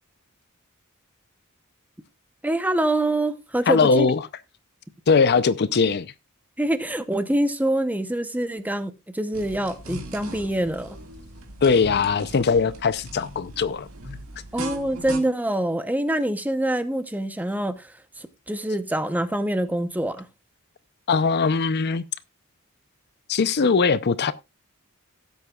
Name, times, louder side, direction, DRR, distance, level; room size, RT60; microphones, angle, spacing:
voice 1, 2.4-4.1 6.6-10.9 14.5-17.9 18.2-20.3, right 1 dB, 5° right, 0.8 m, -25 dB
voice 2, 3.7-4.2 5.1-6.1 11.6-13.9 21.1-22.0 23.3-24.3, left 5 dB, 50° left, 0.5 m, -20 dB
sound 1, 9.3-15.2, right 1 dB, 70° right, 2.0 m, -38 dB
17.5 x 8.0 x 2.3 m
head